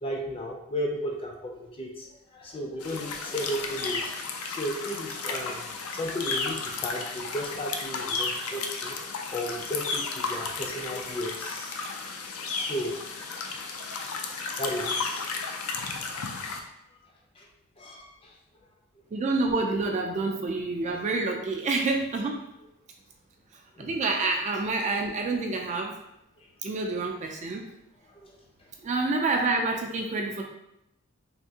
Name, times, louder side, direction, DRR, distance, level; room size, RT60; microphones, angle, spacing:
voice 1, 0.0-4.1 4.5-9.0 9.3-11.8 12.5-13.0 14.6-15.3 17.4-17.5 17.8-18.3 23.8-23.9 28.1-28.3, equal, 25° left, 0 dB, 0.5 m, -34 dB
sound 1, 2.8-16.6, left 4 dB, 75° left, 0.4 m, -33 dB
voice 2, 19.1-22.4 23.8-25.9 26.6-27.6 28.8-30.4, right 3 dB, 35° right, 2 dB, 0.3 m, -28 dB
3.3 x 2.7 x 2.7 m, 0.83 s
head